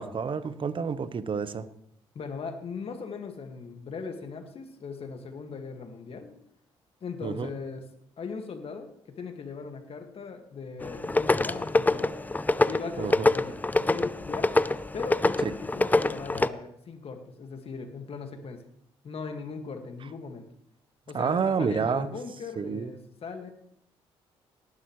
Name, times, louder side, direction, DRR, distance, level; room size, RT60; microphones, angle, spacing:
voice 1, 0.0-1.7 7.2-7.5 13.0-13.3 15.4-15.5 21.1-22.1 22.6-22.9, right 6 dB, 45° right, 0.9 m, -29 dB
voice 2, 2.2-6.3 7.0-7.9 8.2-12.2 12.7-14.5 14.9-18.6 19.0-20.5 21.1-23.5, left 5 dB, 50° left, 2.0 m, -39 dB
sound 1, 10.8-16.5, left 2 dB, 15° left, 0.5 m, -25 dB
18.5 x 10.5 x 3.2 m
hypercardioid pair, 55°, 12 cm